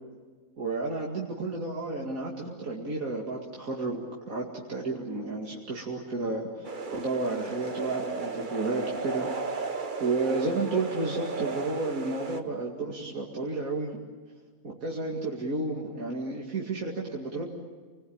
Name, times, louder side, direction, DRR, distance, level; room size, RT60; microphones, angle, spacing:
voice 1, 0.6-9.3 10.0-13.9 14.6-17.5, right 3 dB, 80° right, -3 dB, 2.8 m, -32 dB
sound 1, 6.6-12.4, right 4 dB, 40° right, 1.3 m, -35 dB
28.5 x 21.0 x 8.8 m, 1.5 s
omnidirectional pair, 1.4 m